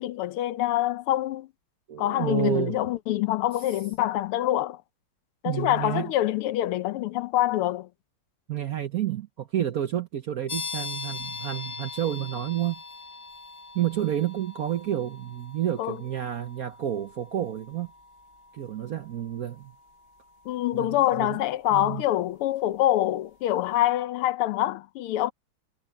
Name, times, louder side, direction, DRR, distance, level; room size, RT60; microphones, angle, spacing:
voice 1, 0.0-1.5 2.0-4.8 5.4-7.9 15.8-16.0 20.5-25.3, left 14 dB, 85° left, 1.6 m, -25 dB
voice 2, 1.9-2.8 5.4-6.1 8.5-12.8 13.7-17.9 18.5-19.7 20.7-21.4 21.7-22.0, right 11 dB, 60° right, 1.0 m, -30 dB
sound 1, 10.5-23.0, left 5 dB, 55° left, 0.6 m, -42 dB
omnidirectional pair, 2.4 m